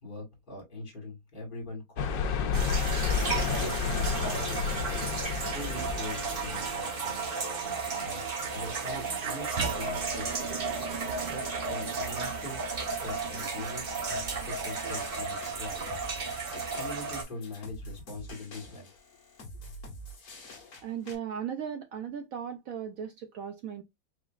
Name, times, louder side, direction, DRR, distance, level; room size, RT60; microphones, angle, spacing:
voice 1, 0.0-2.8 3.6-4.6 4.9-5.1 5.5-7.2 8.0-8.2 8.5-10.3 11.1-13.9 14.4-16.0 16.5-18.9, left 1 dB, 30° left, 2.1 m, -42 dB
sound 1, 2.0-6.9, left 6 dB, 75° left, 1.3 m, -31 dB
sound 2, 2.5-17.2, right 4 dB, 40° right, 0.8 m, -33 dB
sound 3, 14.1-21.2, equal, 45° left, 1.5 m, -47 dB
voice 2, 20.8-23.8, right 8 dB, 75° right, 0.8 m, -37 dB
4.9 x 3.2 x 2.4 m
omnidirectional pair, 2.0 m